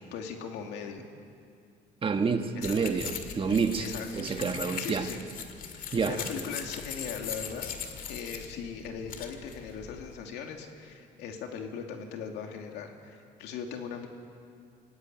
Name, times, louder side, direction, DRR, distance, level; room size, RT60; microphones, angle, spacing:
voice 1, 0.1-1.1 2.5-3.0 3.8-4.4 4.8-5.2 5.7-7.7 8.1-14.1, left 6 dB, 85° left, 3 dB, 2.7 m, -39 dB
voice 2, 2.0-3.9 4.1-5.1 5.9-6.2, right 5 dB, 30° right, 5 dB, 1.9 m, -28 dB
sound 1, 2.6-10.1, left 7 dB, 55° left, 2.3 m, -40 dB
25.0 x 17.0 x 9.0 m, 2.4 s
cardioid pair, 110°, 17 cm